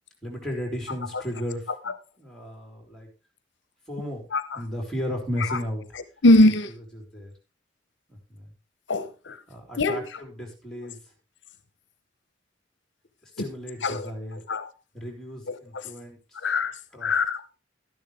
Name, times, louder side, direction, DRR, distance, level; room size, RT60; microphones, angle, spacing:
voice 1, 0.2-3.1 3.9-4.2 4.5-5.8 6.4-6.5 6.9-7.3 8.1-8.5 9.5-11.0 13.2-14.4 14.9-16.2 16.9-17.1, equal, ahead, 3.9 m, -34 dB
voice 2, 6.2-6.7 8.9-9.4 9.8-10.1 13.8-14.1 14.5-14.7 15.5-15.8 16.4-17.5, left 2 dB, 65° left, 0.8 m, -22 dB
12.5 x 10.5 x 3.3 m
head